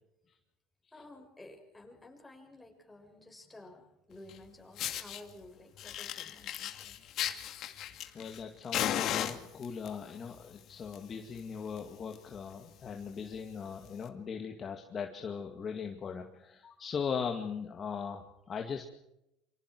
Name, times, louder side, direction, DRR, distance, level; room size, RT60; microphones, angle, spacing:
voice 1, 0.9-7.0, left 2 dB, 10° left, 2 dB, 6.6 m, -53 dB
Fire, 4.3-4.4 4.8-5.2 5.8-8.4 8.7-9.9 10.7-11.0 11.3-11.4 11.8-11.9 12.1-12.4 12.9-13.0 13.9-14.0, left 11 dB, 55° left, 2.3 m, -35 dB
voice 2, 8.1-18.8, left 6 dB, 35° left, 3 dB, 2.3 m, -39 dB
28.5 x 25.5 x 4.7 m, 0.87 s
supercardioid pair, 110°, 0 cm